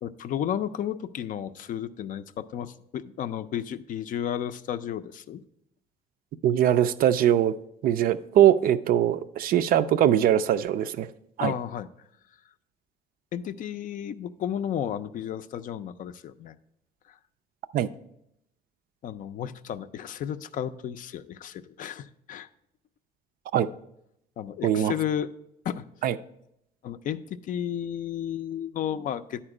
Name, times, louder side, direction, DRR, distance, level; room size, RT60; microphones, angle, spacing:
voice 1, 0.0-5.4 11.4-11.9 13.3-16.5 17.1-17.2 19.0-22.5 24.4-25.3 25.6-25.9 26.8-29.4, left 9 dB, 50° left, 12 dB, 0.4 m, -33 dB
voice 2, 6.4-7.5 7.8-11.1 11.4-11.5 17.7-17.9 23.5-23.7 24.6-24.9 26.0-26.1, right 11 dB, 60° right, 14 dB, 0.4 m, -21 dB
9.9 x 4.3 x 4.8 m, 0.78 s
cardioid pair, 110°, 17 cm